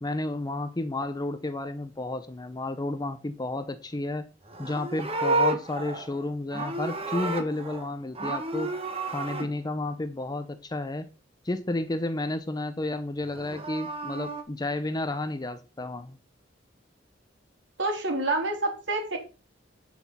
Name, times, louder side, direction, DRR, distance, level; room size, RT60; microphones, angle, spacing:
voice 1, 0.0-4.3 4.6-8.7 9.1-11.0 11.4-16.2, left 2 dB, 20° left, 11 dB, 0.6 m, -31 dB
Livestock farm animals working animals, 4.4-7.9 8.1-9.5 13.2-14.4, right 2 dB, 30° right, 1.5 m, -31 dB
voice 2, 17.8-19.2, right 2 dB, 75° right, 2 dB, 3.6 m, -27 dB
9.4 x 6.0 x 5.5 m, 0.33 s
head